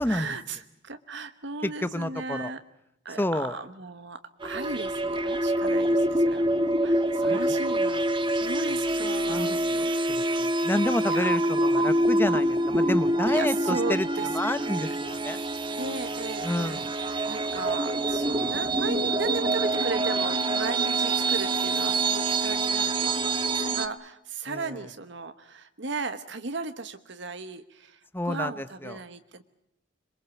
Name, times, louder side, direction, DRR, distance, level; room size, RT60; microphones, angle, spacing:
voice 1, 0.0-2.6 3.0-10.2 11.0-11.3 13.3-14.3 14.7-14.9 15.8-28.0 28.2-29.4, right 3 dB, 60° right, 9 dB, 1.2 m, -36 dB
voice 2, 1.6-2.5 3.2-3.5 7.2-7.4 9.3-9.9 10.4-14.1 14.3-15.4 16.4-16.9 18.3-18.6 24.5-24.8 28.1-29.0, left 1 dB, 10° left, 12 dB, 0.9 m, -29 dB
sound 1, 4.4-23.9, right 1 dB, 25° right, 1.3 m, -26 dB
26.5 x 23.5 x 7.1 m, 0.83 s
head